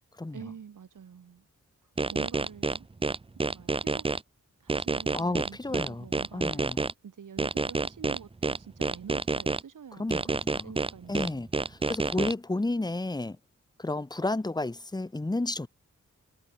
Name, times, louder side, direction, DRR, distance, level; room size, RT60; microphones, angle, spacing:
voice 1, 0.3-1.5 2.1-2.9 3.3-4.1 4.6-11.5, right 7 dB, 85° right, 1.1 m, -47 dB
sound 1, 2.0-4.2 4.7-6.9 7.4-9.6 10.1-12.3, right 3 dB, 20° right, 0.4 m, -28 dB
voice 2, 5.1-6.1 6.3-6.8 10.0-10.7 11.1-13.4 13.8-15.7, left 2 dB, 15° left, 0.8 m, -32 dB
wide cardioid pair, 70°, 31 cm